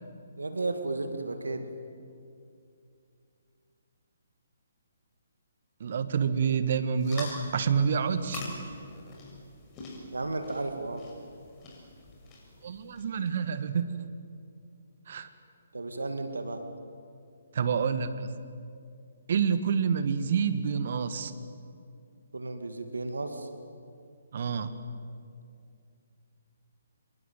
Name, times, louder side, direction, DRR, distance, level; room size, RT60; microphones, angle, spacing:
voice 1, 0.4-1.7 10.1-11.0 15.7-16.6 22.3-23.5, right 2 dB, 70° right, 7 dB, 2.4 m, -33 dB
voice 2, 5.8-8.4 12.6-13.9 15.1-15.3 17.5-18.3 19.3-21.3 24.3-24.7, right 6 dB, 50° right, 11 dB, 1.6 m, -28 dB
sound 1, 7.0-13.3, left 2 dB, 20° left, 6.6 m, -45 dB
27.0 x 22.5 x 9.2 m, 2.4 s
figure-of-eight pair, 135°, 0 cm